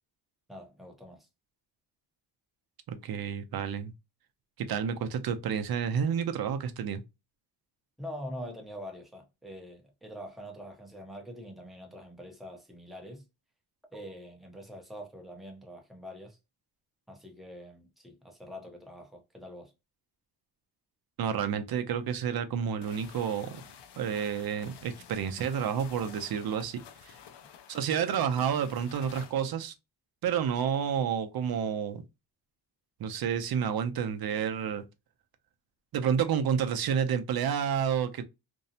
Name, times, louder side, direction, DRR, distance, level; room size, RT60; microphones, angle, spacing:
voice 1, 0.5-1.3 8.0-13.2 13.9-16.4 17.1-19.7, equal, ahead, 0.6 m, -44 dB
voice 2, 2.9-3.9 4.6-7.0 21.2-23.6 24.0-27.2 27.7-29.7 30.2-32.0 33.0-34.8 35.9-38.2, right 8 dB, 65° right, 0.5 m, -30 dB
sound 1, 22.8-29.4, left 8 dB, 85° left, 0.5 m, -50 dB
2.6 x 2.0 x 2.7 m
cardioid pair, 110°, 40 cm